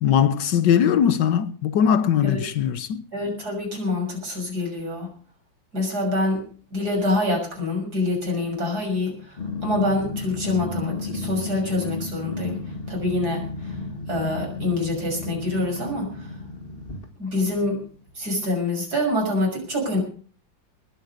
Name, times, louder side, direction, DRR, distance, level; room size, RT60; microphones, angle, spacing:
voice 1, 0.0-3.0, left 8 dB, 70° left, 1.5 m, -20 dB
voice 2, 3.1-5.1 5.7-6.4 6.7-13.8 14.1-16.3 17.2-17.8 18.2-20.0, left 2 dB, 55° right, 7.1 m, -26 dB
Growling, 9.4-17.1, left 3 dB, 30° left, 1.9 m, -33 dB
20.0 x 9.1 x 6.6 m
omnidirectional pair, 2.0 m